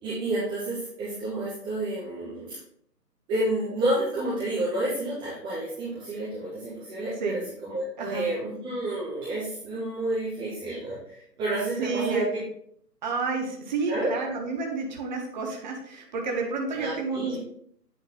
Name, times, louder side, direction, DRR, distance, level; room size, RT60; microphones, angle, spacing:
voice 1, 0.0-2.6 3.3-12.2 13.9-14.1 16.7-17.4, right 1 dB, 10° right, -11 dB, 1.2 m, -30 dB
voice 2, 11.8-12.2 13.0-17.4, right 4 dB, 30° right, 1 dB, 1.1 m, -30 dB
9.3 x 3.9 x 3.7 m, 0.66 s
figure-of-eight pair, 145°, 48 cm